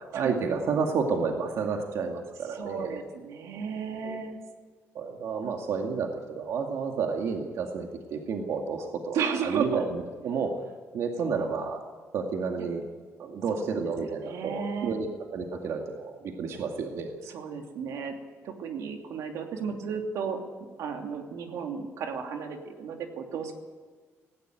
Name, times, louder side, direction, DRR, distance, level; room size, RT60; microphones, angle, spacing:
voice 1, 0.0-3.0 4.0-4.2 4.9-10.6 10.9-11.8 12.1-12.8 13.2-17.1, right 5 dB, 65° right, 2 dB, 2.2 m, -31 dB
voice 2, 2.5-4.4 5.4-5.5 9.1-9.9 12.6-12.7 13.5-13.9 14.2-15.0 17.3-18.1 18.4-20.4 20.8-23.5, right 6 dB, 90° right, 3 dB, 2.9 m, -33 dB
18.0 x 17.5 x 9.3 m, 1.5 s
cardioid pair, 150°, 5 cm